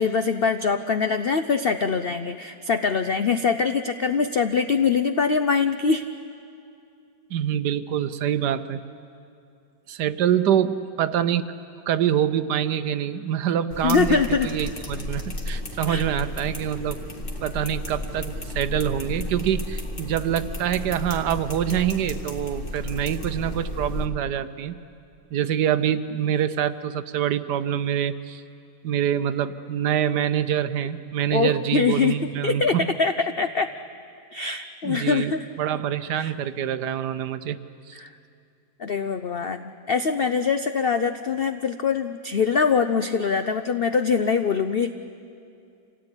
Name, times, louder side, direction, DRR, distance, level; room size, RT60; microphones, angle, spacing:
voice 1, 0.0-6.0 13.8-14.5 15.9-16.0 31.3-33.7 34.3-35.5 36.1-36.3 37.9-38.1 38.8-44.9, left 5 dB, 70° left, 9 dB, 0.5 m, -23 dB
voice 2, 7.3-8.8 9.9-11.5 11.9-17.0 17.4-24.7 25.3-28.4 28.8-32.9 34.8-35.3 35.6-37.6 37.9-38.0, right 10 dB, 75° right, 12 dB, 1.3 m, -25 dB
sound 1, 13.7-24.1, left 1 dB, 30° left, 2.2 m, -33 dB
27.0 x 17.5 x 9.7 m, 2.5 s
omnidirectional pair, 1.9 m